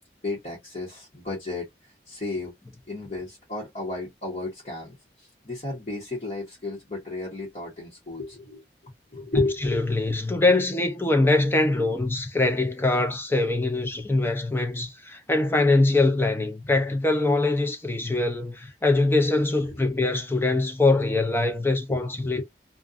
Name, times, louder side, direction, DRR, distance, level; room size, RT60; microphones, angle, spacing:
voice 1, 0.2-1.7 2.1-2.5 2.9-9.8 19.5-19.8 21.9-22.4, left 2 dB, 40° left, 0.9 m, -33 dB
voice 2, 9.6-22.4, left 2 dB, 10° left, 0.5 m, -23 dB
2.5 x 2.2 x 2.4 m
head